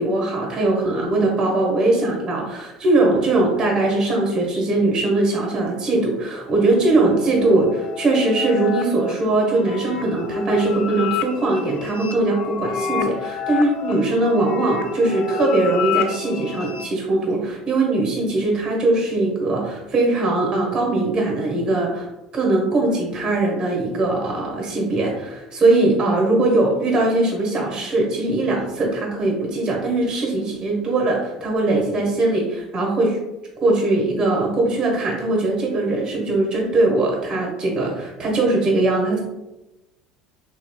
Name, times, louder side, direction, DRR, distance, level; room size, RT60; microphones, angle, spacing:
voice 1, 0.0-22.1 22.3-33.2 33.6-39.2, right 2 dB, 35° right, -1 dB, 1.1 m, -20 dB
sound 1, 6.5-16.9, left 6 dB, 50° left, 0.3 m, -29 dB
2.9 x 2.8 x 2.3 m, 0.99 s
hypercardioid pair, 70°, 2 cm